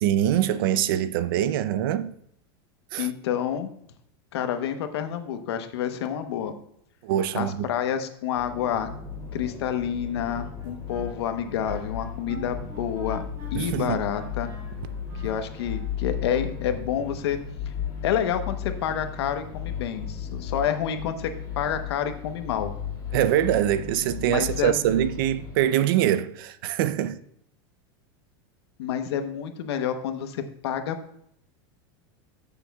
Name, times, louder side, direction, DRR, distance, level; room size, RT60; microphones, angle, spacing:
voice 1, 0.0-2.1 2.9-3.1 7.0-7.7 13.5-14.0 23.1-27.2, right 11 dB, 60° right, 0.6 m, -24 dB
voice 2, 3.0-3.7 4.3-6.5 7.3-8.9 9.3-13.2 13.5-14.5 15.2-17.4 18.0-22.7 24.3-24.8 28.8-31.0, left 9 dB, 80° left, 1.0 m, -28 dB
sound 1, 8.3-25.6, left 7 dB, 25° left, 2.1 m, -35 dB
Wind instrument woodwind instrument, 10.6-15.9, right 3 dB, 25° right, 2.7 m, -44 dB
14.5 x 6.9 x 2.3 m
supercardioid pair, 165°, 13 cm